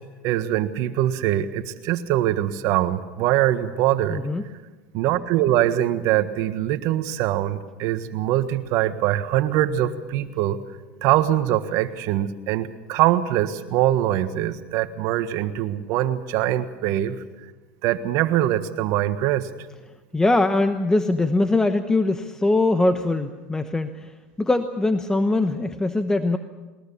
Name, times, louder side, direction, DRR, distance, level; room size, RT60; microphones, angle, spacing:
voice 1, 0.2-4.2 4.9-10.6 11.0-17.2 17.8-19.5, right 13 dB, 60° right, 10 dB, 1.5 m, -23 dB
voice 2, 4.1-4.4 20.1-26.4, left 2 dB, 10° left, 9 dB, 1.0 m, -22 dB
21.5 x 20.0 x 7.1 m, 1.2 s
hypercardioid pair, 95°, 6 cm